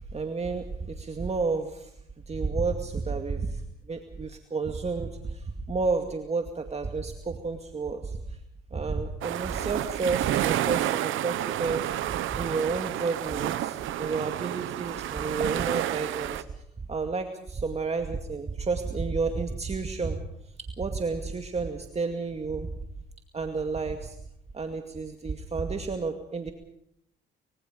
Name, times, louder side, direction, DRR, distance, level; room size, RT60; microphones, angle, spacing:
voice 1, 0.1-1.9 2.3-3.6 3.9-8.4 8.7-16.4 16.9-20.2 20.8-22.7 23.3-24.2 24.5-26.5, right 4 dB, 30° right, 5 dB, 2.2 m, -31 dB
sound 1, 9.2-16.4, right 13 dB, 85° right, 1.0 m, -30 dB
24.5 x 24.0 x 5.3 m, 0.74 s
cardioid pair, 90°, 20 cm